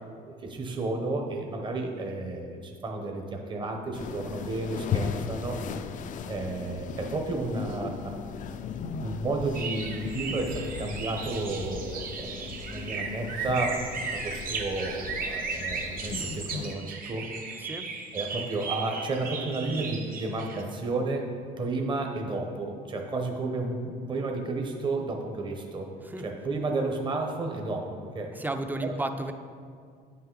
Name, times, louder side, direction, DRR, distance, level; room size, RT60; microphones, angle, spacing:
voice 1, 0.3-5.6 6.3-8.1 9.0-13.8 14.1-17.3 18.1-25.9 26.2-28.3 28.8-29.0, right 2 dB, 30° right, 2 dB, 0.9 m, -32 dB
sound 1, 3.9-16.7, left 6 dB, 50° left, 0.4 m, -37 dB
sound 2, 9.5-20.6, right 4 dB, 60° right, 1.0 m, -36 dB
voice 2, 28.4-29.3, right 2 dB, 10° right, 7 dB, 0.5 m, -32 dB
9.0 x 5.7 x 3.8 m, 2.2 s
cardioid pair, 110°, 17 cm